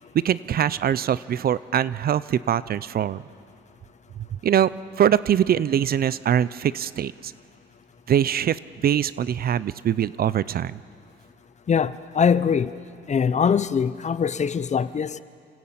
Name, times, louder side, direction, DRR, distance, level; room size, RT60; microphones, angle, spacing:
voice 1, 0.2-3.2 4.4-4.7 5.0-7.3 8.1-10.8, right 9 dB, 50° right, 0.5 m, -23 dB
voice 2, 11.7-12.7 13.1-15.2, left 6 dB, 35° left, 0.6 m, -22 dB
27.5 x 14.0 x 8.7 m
cardioid pair, 90°, 20 cm